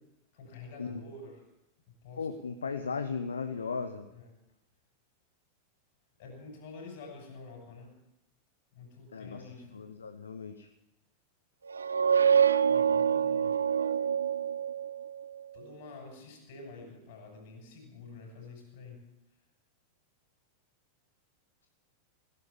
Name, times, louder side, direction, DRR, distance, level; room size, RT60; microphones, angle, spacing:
voice 1, 0.3-1.4 1.9-2.3 4.1-4.3 6.2-7.9 8.7-9.8 12.7-13.6 15.5-19.0, left 3 dB, 50° left, 2 dB, 6.8 m, -48 dB
voice 2, 2.2-4.1 9.1-9.4 9.7-10.7, left 5 dB, 75° left, 8 dB, 0.9 m, -36 dB
sound 1, 11.7-15.3, right 7 dB, 75° right, 0.5 m, -26 dB
17.0 x 11.0 x 7.0 m, 0.92 s
figure-of-eight pair, 90°, 0 cm